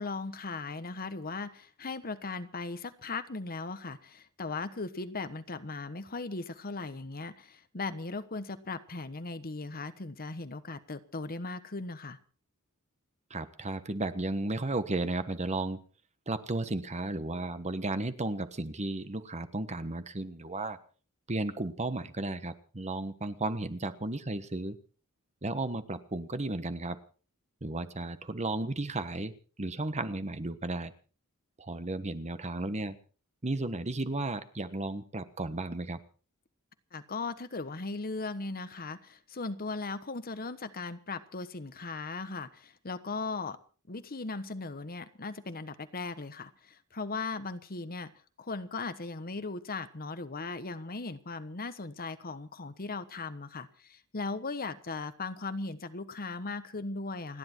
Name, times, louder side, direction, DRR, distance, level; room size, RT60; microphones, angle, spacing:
voice 1, 0.0-12.2 36.9-43.6 43.9-48.1 48.4-57.4, left 3 dB, 40° left, 12 dB, 1.2 m, -38 dB
voice 2, 13.3-15.8 16.3-20.8 21.3-24.8 25.4-27.0 27.6-30.9 31.6-32.9 33.4-36.0, right 2 dB, 30° right, 11 dB, 1.2 m, -34 dB
29.0 x 10.5 x 4.5 m, 0.39 s
head